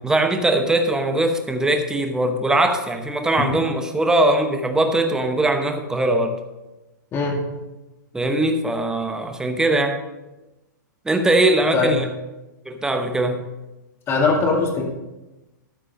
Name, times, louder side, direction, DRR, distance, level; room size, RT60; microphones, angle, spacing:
voice 1, 0.0-6.4 8.1-10.0 11.0-12.1 12.7-13.5, right 2 dB, 5° right, 6 dB, 0.9 m, -21 dB
voice 2, 7.1-7.4 11.7-12.0 14.1-14.8, left 4 dB, 25° left, 1 dB, 2.0 m, -20 dB
13.0 x 4.6 x 5.3 m, 1.1 s
hypercardioid pair, 135°, 11 cm